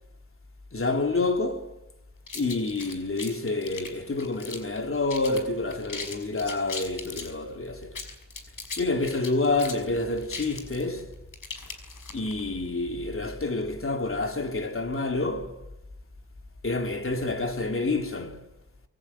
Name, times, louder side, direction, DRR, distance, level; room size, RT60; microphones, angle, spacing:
voice 1, 0.7-1.8 2.3-8.0 8.8-11.1 12.1-15.6 16.6-18.4, left 3 dB, 45° left, 3.3 m, -28 dB
sound 1, 2.3-4.8 5.1-5.4 5.7-7.3 7.8-12.4, left 4 dB, 85° left, 5.7 m, -38 dB
26.0 x 23.0 x 8.7 m
wide cardioid pair, 80°, 31 cm